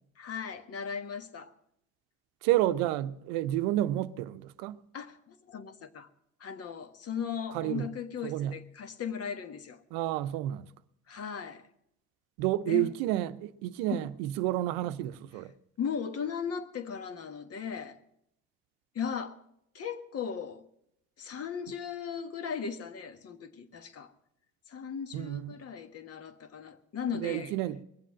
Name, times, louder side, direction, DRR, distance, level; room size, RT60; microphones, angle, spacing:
voice 1, 0.2-1.5 4.9-6.1 6.4-9.8 11.1-11.7 12.7-12.9 13.9-14.0 15.8-18.0 18.9-19.4 19.7-20.7 21.2-24.1 24.7-27.5, left 7 dB, 45° left, 1.4 m, -37 dB
voice 2, 2.4-4.8 7.5-7.9 8.2-8.6 9.9-10.7 12.4-15.5 25.1-25.6 27.1-27.8, right 14 dB, 85° right, 0.7 m, -30 dB
21.5 x 7.6 x 7.4 m
supercardioid pair, 85°, 33 cm